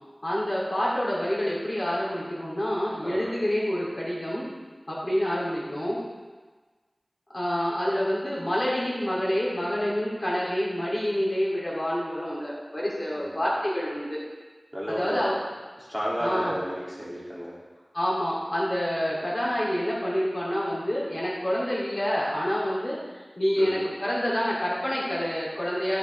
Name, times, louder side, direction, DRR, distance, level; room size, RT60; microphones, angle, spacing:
voice 1, 0.2-4.5 4.9-6.0 7.3-14.2 14.9-15.4 16.2-16.5 17.9-26.0, equal, 45° left, -6 dB, 3.1 m, -27 dB
voice 2, 14.7-15.2 15.9-17.5 23.6-23.8, equal, ahead, -7 dB, 2.8 m, -31 dB
13.0 x 6.9 x 3.5 m, 1.3 s
wide cardioid pair, 45°, 0 cm